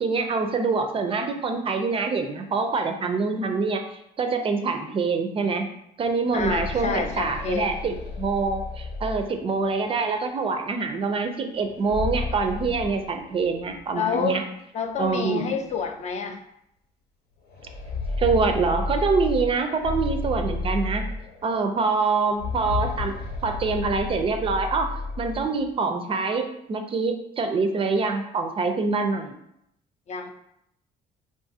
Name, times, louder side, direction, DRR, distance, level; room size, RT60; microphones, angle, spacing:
voice 1, 0.0-3.8 4.2-5.7 6.0-14.4 15.0-15.5 18.2-21.0 21.4-23.1 23.4-29.3, right 4 dB, 35° right, 6 dB, 0.4 m, -25 dB
sound 1, 6.1-9.8 11.6-13.8 14.1-14.2 15.1-15.2 15.7-15.8 17.4-21.6 22.3-25.7, left 3 dB, 70° left, 0.9 m, -32 dB
voice 2, 6.3-7.8 13.9-14.4 14.7-16.4 30.1-30.3, left 5 dB, 40° left, 6 dB, 0.4 m, -28 dB
3.5 x 2.4 x 2.6 m, 0.78 s
cardioid pair, 110°, 17 cm